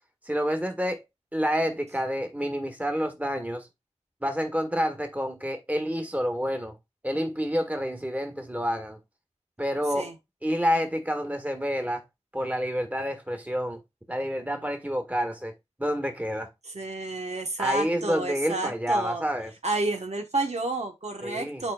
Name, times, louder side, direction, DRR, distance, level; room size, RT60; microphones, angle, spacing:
voice 1, 0.3-1.0 1.3-3.7 4.2-6.7 7.0-9.0 9.6-10.1 10.4-12.0 12.3-13.8 14.1-15.5 15.8-16.5 17.6-19.5 21.2-21.6, equal, 15° right, 1.6 m, -28 dB
voice 2, 16.7-19.2 19.6-21.7, right 2 dB, 65° right, 1.1 m, -30 dB
11.5 x 3.9 x 2.3 m
wide cardioid pair, 45°, 12 cm